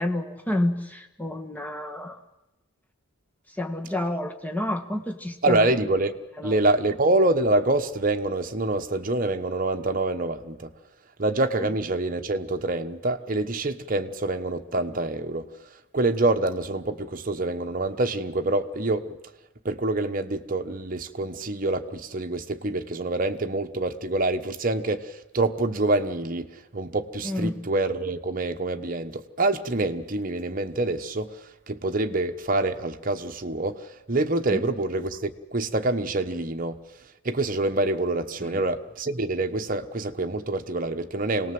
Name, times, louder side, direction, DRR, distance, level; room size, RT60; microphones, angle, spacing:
voice 1, 0.0-2.2 3.6-5.7 6.4-6.6 27.2-27.5 34.5-34.6 38.4-38.6, left 1 dB, 10° left, 1.6 m, -29 dB
voice 2, 5.4-6.1 6.4-10.7 11.2-15.5 15.9-19.1 19.6-36.8 37.2-41.5, right 2 dB, 40° right, 1.2 m, -26 dB
26.0 x 19.0 x 7.8 m
head